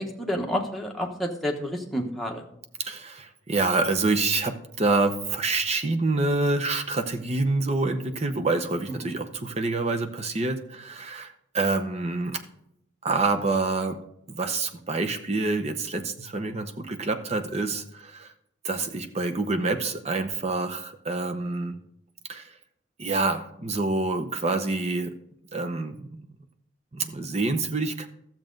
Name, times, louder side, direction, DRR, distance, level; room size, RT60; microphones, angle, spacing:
voice 1, 0.0-2.5 9.0-9.2, equal, ahead, 0 dB, 1.2 m, -30 dB
voice 2, 2.8-12.4 13.0-14.0 14.3-18.3 18.6-21.8 22.3-22.6 23.0-25.1 25.5-26.0 26.9-28.1, right 3 dB, 35° right, 7 dB, 0.8 m, -27 dB
12.5 x 7.5 x 3.9 m, 0.74 s
head